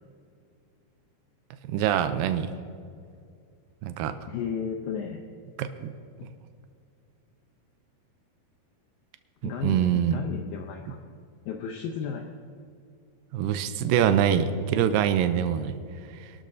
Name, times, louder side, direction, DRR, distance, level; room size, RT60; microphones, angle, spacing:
voice 1, 1.7-2.5 3.8-4.1 5.6-5.9 9.6-10.2 13.3-15.8, right 9 dB, 85° right, 10 dB, 2.1 m, -24 dB
voice 2, 4.3-5.2 6.2-6.3 9.4-11.0 11.5-12.2, left 7 dB, 75° left, 2 dB, 2.3 m, -33 dB
24.0 x 12.0 x 2.7 m, 2.3 s
omnidirectional pair, 4.6 m